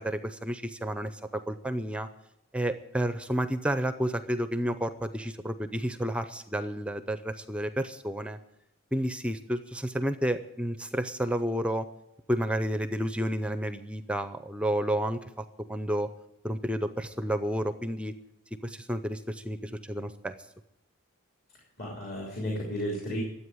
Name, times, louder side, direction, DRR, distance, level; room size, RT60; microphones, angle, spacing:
voice 1, 0.0-2.1 2.5-8.4 8.9-11.9 12.3-16.1 16.4-18.1 18.6-20.3, right 1 dB, 5° right, 11 dB, 0.5 m, -31 dB
voice 2, 21.5-23.2, equal, 45° left, -2 dB, 3.3 m, -34 dB
13.0 x 8.5 x 9.4 m, 0.86 s
head